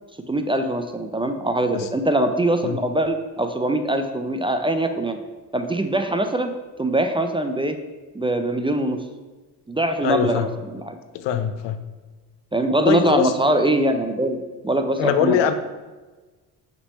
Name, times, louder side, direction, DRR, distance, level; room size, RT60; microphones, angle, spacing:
voice 1, 0.3-5.2 5.5-6.5 6.8-7.8 8.1-9.0 9.7-11.0 12.5-15.5, right 1 dB, 15° right, 7 dB, 0.4 m, -22 dB
voice 2, 10.0-10.5 11.1-11.8 12.9-13.3 15.0-15.5, left 9 dB, 80° left, 9 dB, 0.6 m, -22 dB
6.0 x 3.2 x 5.4 m, 1.3 s
cardioid pair, 80°, 42 cm